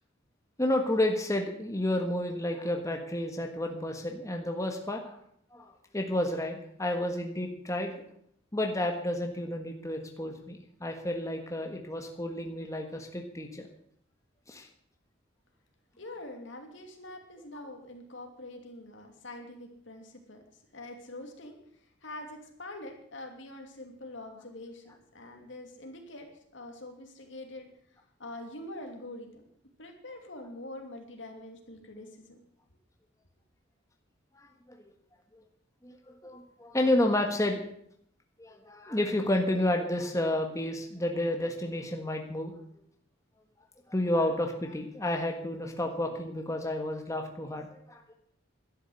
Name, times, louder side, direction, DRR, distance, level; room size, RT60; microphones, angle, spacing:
voice 1, 0.6-5.2 5.5-8.1 8.5-13.7 14.5-14.7 34.3-34.8 35.8-37.6 38.4-42.5 43.9-48.1, left 1 dB, 15° left, 3 dB, 1.5 m, -31 dB
voice 2, 16.0-21.6 22.0-27.7 28.2-29.4 29.8-32.4, left 1 dB, 70° left, 3 dB, 2.9 m, -44 dB
12.0 x 10.5 x 8.1 m, 0.68 s
head